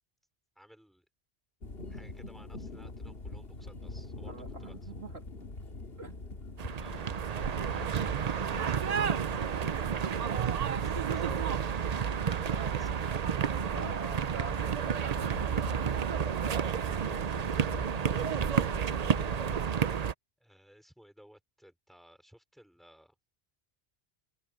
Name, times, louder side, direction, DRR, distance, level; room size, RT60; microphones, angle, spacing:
voice 1, 0.5-1.0 1.9-4.9 18.2-18.3 20.4-23.1, equal, ahead, 5.0 m, -58 dB
sound 1, 1.6-19.6, left 2 dB, 70° left, 2.5 m, -45 dB
voice 2, 4.3-5.3 6.0-6.4 13.7-16.5, right 2 dB, 80° right, 3.1 m, -46 dB
sound 2, 6.6-20.1, right 7 dB, 45° right, 0.6 m, -31 dB
omnidirectional pair, 1.0 m